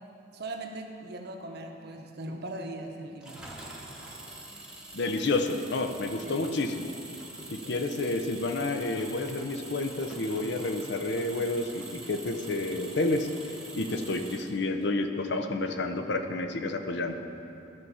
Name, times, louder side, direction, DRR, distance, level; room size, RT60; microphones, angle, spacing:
voice 1, 0.3-3.5 6.2-6.4 7.6-7.8, right 2 dB, 55° right, 3 dB, 0.8 m, -39 dB
Engine, 3.2-14.8, right 2 dB, 5° right, 0.9 m, -45 dB
voice 2, 4.9-6.9 7.5-13.3 13.8-17.1, left 2 dB, 60° left, 7 dB, 0.6 m, -30 dB
12.5 x 4.7 x 5.6 m, 2.7 s
head